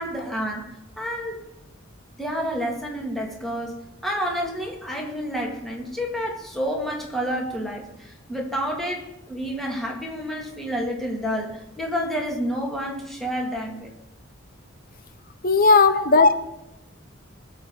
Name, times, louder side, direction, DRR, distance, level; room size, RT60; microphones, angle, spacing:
voice 1, 0.0-1.4 2.2-13.9 15.8-16.3, equal, ahead, -1 dB, 2.5 m, -29 dB
voice 2, 15.4-16.3, left 4 dB, 45° left, 10 dB, 0.9 m, -16 dB
20.0 x 7.2 x 4.9 m, 0.91 s
head